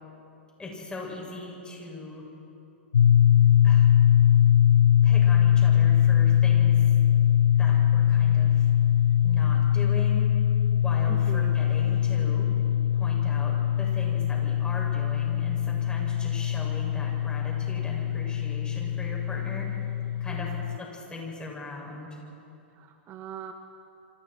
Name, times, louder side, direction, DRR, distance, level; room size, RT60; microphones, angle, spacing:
voice 1, 0.6-2.2 3.6-3.9 5.0-7.0 7.6-8.7 9.2-10.3 10.8-12.5 12.9-19.7 20.2-22.2, left 2 dB, 15° left, -2 dB, 7.4 m, -39 dB
sound 1, 2.9-20.8, left 10 dB, 85° left, 0.6 m, -22 dB
voice 2, 11.1-11.5 16.2-16.3 20.3-20.6 22.7-23.5, right 10 dB, 35° right, 5 dB, 1.7 m, -41 dB
28.0 x 26.0 x 4.7 m, 2.8 s
hypercardioid pair, 115°, 6 cm